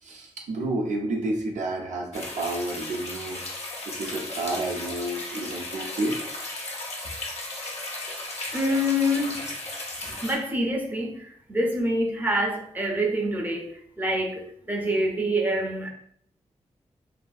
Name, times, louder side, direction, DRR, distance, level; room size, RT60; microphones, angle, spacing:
voice 1, 0.0-3.4 3.9-6.2, right 2 dB, 85° right, 0.5 m, -30 dB
sound 1, 2.1-10.3, left 2 dB, 60° left, 0.7 m, -35 dB
voice 2, 8.5-9.5 10.0-15.9, equal, 15° right, 0.6 m, -26 dB
2.6 x 2.5 x 2.3 m
cardioid pair, 60°, 12 cm